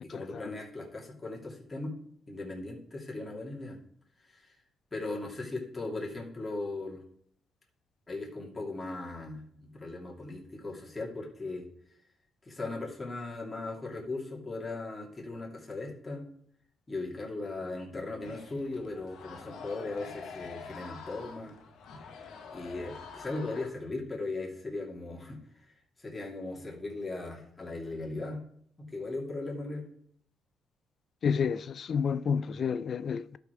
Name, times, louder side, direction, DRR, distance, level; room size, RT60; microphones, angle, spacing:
voice 1, 0.0-1.9 2.3-3.8 4.2-4.6 4.9-7.0 8.1-11.7 12.4-16.2 16.9-21.6 22.5-25.7 26.0-28.4 28.8-29.9, left 2 dB, 20° left, 2.7 m, -38 dB
sound 1, 18.2-23.7, left 5 dB, 80° left, 1.2 m, -46 dB
voice 2, 31.2-33.4, left 6 dB, 55° left, 0.3 m, -30 dB
12.0 x 5.1 x 4.6 m
cardioid pair, 90°, 0 cm